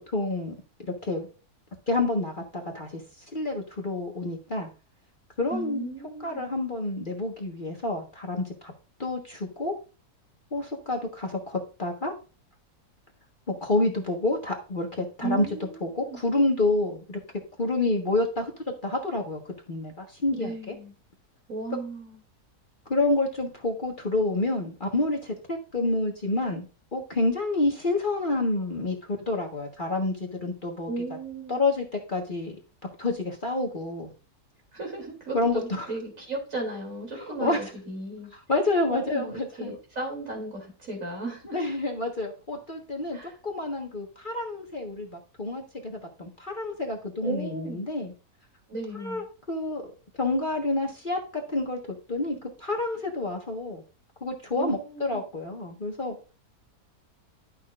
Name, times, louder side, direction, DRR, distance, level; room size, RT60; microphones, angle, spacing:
voice 1, 0.1-0.5 0.9-1.3 1.9-3.0 3.3-4.7 5.4-5.9 6.2-8.7 9.0-9.7 10.5-12.1 13.5-15.5 15.8-17.2 17.6-18.5 18.8-19.4 19.7-20.7 22.9-26.6 26.9-29.0 29.3-30.9 31.5-32.5 33.0-34.1 35.3-35.9 37.2-37.6 38.5-39.7 41.5-43.2 43.4-48.1 49.0-49.2 49.5-49.8 50.2-51.8 52.1-53.8 54.2-56.1, left 2 dB, 35° left, 1.5 m, -28 dB
voice 2, 5.5-6.4 15.2-16.2 20.3-20.9 21.5-22.2 30.9-31.6 34.7-38.3 38.9-41.6 43.1-43.4 47.2-47.8 48.7-49.2 54.5-55.2, right 2 dB, 55° right, 3.6 m, -35 dB
11.5 x 6.4 x 2.5 m
omnidirectional pair, 1.6 m